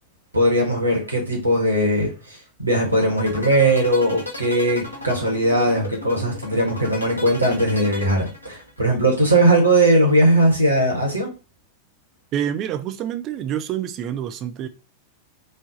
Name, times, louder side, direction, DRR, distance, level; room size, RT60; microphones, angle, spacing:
voice 1, 0.3-11.3, right 1 dB, 85° right, 1.0 m, -19 dB
sound 1, 2.8-8.8, left 3 dB, 80° left, 0.8 m, -34 dB
voice 2, 12.3-14.7, right 10 dB, 35° right, 0.4 m, -27 dB
3.3 x 2.0 x 3.9 m
figure-of-eight pair, 90°, 0 cm